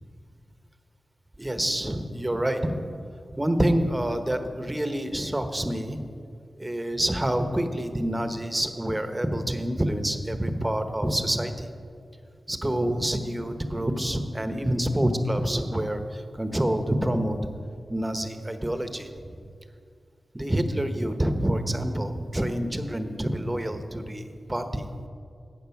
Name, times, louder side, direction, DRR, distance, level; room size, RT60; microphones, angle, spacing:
voice 1, 1.4-2.8 3.3-6.0 6.6-11.7 12.5-17.4 17.9-19.1 20.3-25.1, right 1 dB, 20° right, 8 dB, 1.0 m, -27 dB
13.0 x 8.7 x 5.9 m, 2.3 s
cardioid pair, 60°, 0 cm